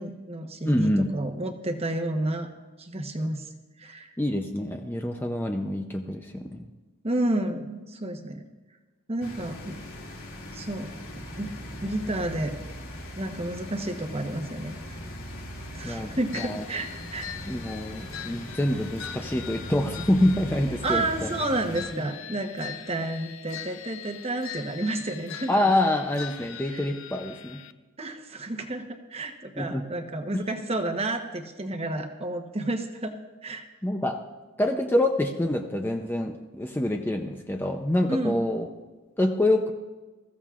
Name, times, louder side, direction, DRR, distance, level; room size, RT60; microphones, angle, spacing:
voice 1, 0.0-2.5 2.8-3.5 3.8-4.1 7.0-8.4 9.1-9.6 10.5-10.9 11.4-11.5 11.8-12.6 13.2-15.0 15.7-17.3 20.8-25.5 26.7-26.8 28.0-33.2 33.4-33.6 38.1-38.4, right 1 dB, 30° right, 4 dB, 1.0 m, -30 dB
voice 2, 0.7-1.1 4.2-6.7 15.8-16.6 17.5-21.3 21.9-22.0 25.5-27.6 29.6-29.8 30.3-30.4 33.8-34.2 34.6-38.7 39.2-39.7, left 1 dB, 10° left, 4 dB, 0.5 m, -26 dB
sound 1, 9.2-21.9, equal, 90° left, 2.4 m, -40 dB
sound 2, 16.3-27.7, left 9 dB, 70° left, 0.6 m, -42 dB
20.5 x 15.0 x 2.5 m, 1.2 s
head